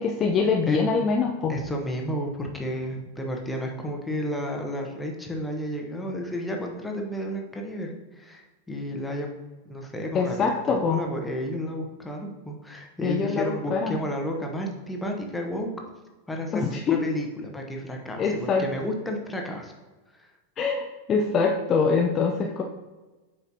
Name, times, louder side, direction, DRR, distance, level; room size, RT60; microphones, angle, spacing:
voice 1, 0.0-1.6 10.1-11.0 13.0-14.0 16.5-17.0 18.2-18.7 20.6-22.6, left 5 dB, 25° left, 2 dB, 0.5 m, -24 dB
voice 2, 1.5-9.3 9.6-15.7 16.3-19.7 20.1-20.3, equal, 10° left, 1 dB, 1.0 m, -32 dB
8.0 x 5.4 x 2.8 m, 1.2 s
figure-of-eight pair, 90°, 0 cm